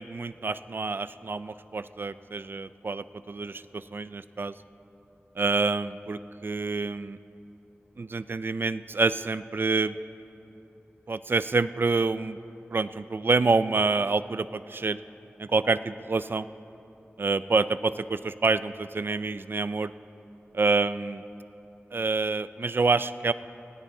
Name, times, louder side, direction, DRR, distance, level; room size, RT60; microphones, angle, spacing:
voice 1, 0.0-4.5 5.4-7.2 8.0-10.0 11.1-12.4 12.7-15.0 15.4-16.5 17.2-19.9 20.5-21.2 21.9-23.3, right 3 dB, 55° right, 14 dB, 0.3 m, -27 dB
19.0 x 17.0 x 2.7 m, 3.0 s
wide cardioid pair, 70°, 4 cm